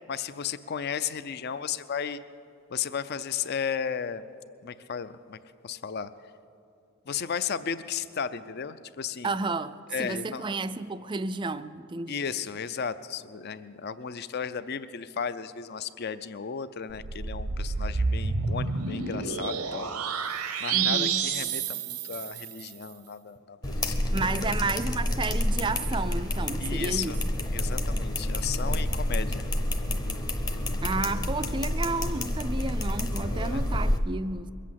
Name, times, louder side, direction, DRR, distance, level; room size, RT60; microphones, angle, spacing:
voice 1, 0.1-2.2 2.7-4.2 4.6-5.4 5.6-6.1 7.1-9.4 9.9-10.5 12.1-19.9 20.6-24.5 26.6-27.2 27.5-29.5 33.2-33.6, left 7 dB, 45° left, 0.4 m, -34 dB
voice 2, 9.2-12.2 20.7-21.2 24.1-27.1 30.8-34.5, right 3 dB, 20° right, 0.3 m, -31 dB
sound 1, 16.9-22.7, right 5 dB, 90° right, 0.9 m, -29 dB
sound 2, 23.6-34.0, left 1 dB, 20° left, 0.7 m, -29 dB
22.0 x 8.4 x 7.5 m
head